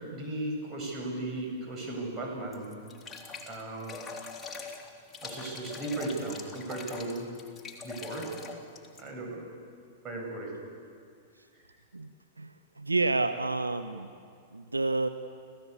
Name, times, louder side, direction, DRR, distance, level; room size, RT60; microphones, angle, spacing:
voice 1, 0.0-2.8 3.5-4.0 5.2-7.3 7.8-8.4 9.0-9.4 10.0-10.6, right 2 dB, 30° right, 0 dB, 8.0 m, -36 dB
sound 1, 2.5-9.1, left 4 dB, 15° left, 3.3 m, -43 dB
voice 2, 11.9-14.1 14.5-15.1, right 3 dB, 90° right, 9 dB, 0.9 m, -30 dB
28.5 x 16.0 x 8.5 m, 2.2 s
figure-of-eight pair, 100°, 0 cm